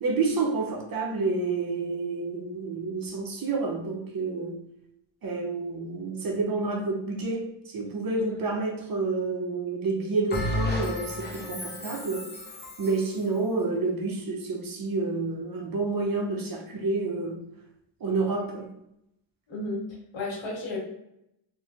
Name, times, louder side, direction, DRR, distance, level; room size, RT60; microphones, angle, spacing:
voice 1, 0.0-4.6 5.2-12.3 12.8-17.4 18.0-18.7, right 3 dB, 45° right, 0.7 m, -29 dB
Bell, 10.3-13.1, left 1 dB, 20° left, 0.8 m, -32 dB
voice 2, 19.5-19.8 20.1-20.8, left 2 dB, 65° left, 1.4 m, -33 dB
2.9 x 2.5 x 2.4 m
cardioid pair, 60°, 49 cm